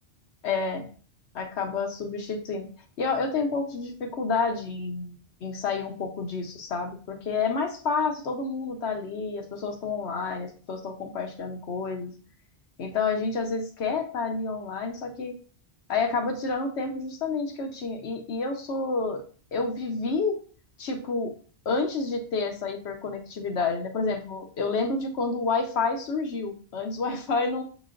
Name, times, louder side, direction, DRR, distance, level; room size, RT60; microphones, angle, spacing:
voice 1, 0.4-0.9 1.3-2.7 3.0-12.1 12.8-15.4 15.9-19.2 19.5-20.4 20.8-21.3 21.7-27.6, left 4 dB, 85° left, 3 dB, 1.1 m, -29 dB
6.4 x 3.0 x 2.5 m, 0.42 s
omnidirectional pair, 1.1 m